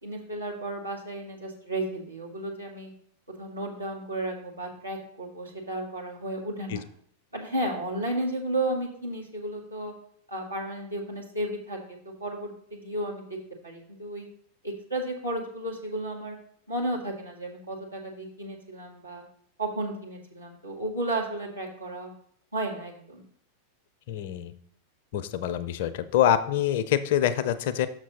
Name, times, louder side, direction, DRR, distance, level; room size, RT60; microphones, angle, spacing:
voice 1, 0.0-2.9 3.4-6.8 7.3-9.9 10.3-13.4 13.6-14.3 14.6-16.4 16.7-19.2 19.6-22.1 22.5-23.2, right 1 dB, 80° right, -2 dB, 1.8 m, -33 dB
voice 2, 24.1-24.5 25.1-27.9, left 10 dB, 50° left, 13 dB, 0.5 m, -25 dB
6.4 x 6.2 x 4.1 m, 0.64 s
figure-of-eight pair, 90°, 0 cm